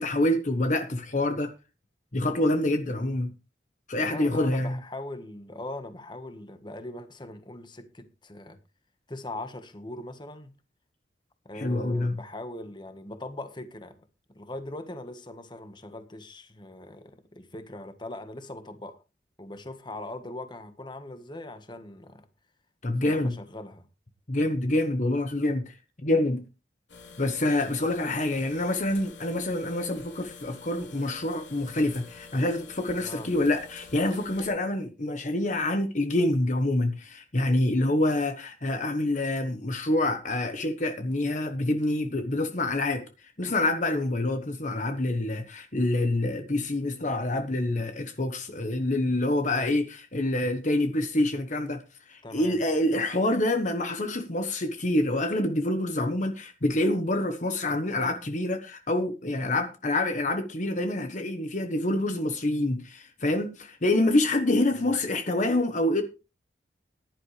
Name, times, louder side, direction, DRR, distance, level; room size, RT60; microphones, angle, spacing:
voice 1, 0.0-1.5 2.1-3.3 3.9-4.8 11.5-12.2 22.8-23.4 24.3-25.7 26.0-26.4 27.2-51.8 52.1-66.0, left 1 dB, 45° left, 1.2 m, -26 dB
voice 2, 4.0-8.6 9.1-10.5 11.4-13.9 14.3-19.0 19.4-22.2 23.0-23.9 33.0-33.3 52.2-52.6 64.7-65.0, left 1 dB, 25° left, 1.4 m, -40 dB
sound 1, 26.9-34.5, left 5 dB, 85° left, 3.1 m, -48 dB
15.0 x 11.0 x 3.3 m
head